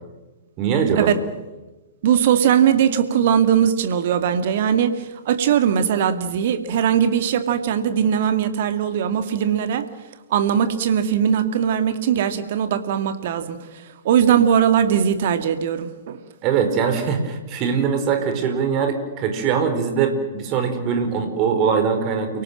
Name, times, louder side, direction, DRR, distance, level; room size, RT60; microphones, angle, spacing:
voice 1, 0.6-1.1 16.4-22.4, right 6 dB, 35° right, 7 dB, 4.9 m, -22 dB
voice 2, 2.0-9.9 10.3-16.2, right 8 dB, 50° right, 9 dB, 2.3 m, -20 dB
29.5 x 18.5 x 7.7 m, 1.1 s
figure-of-eight pair, 110°, 0 cm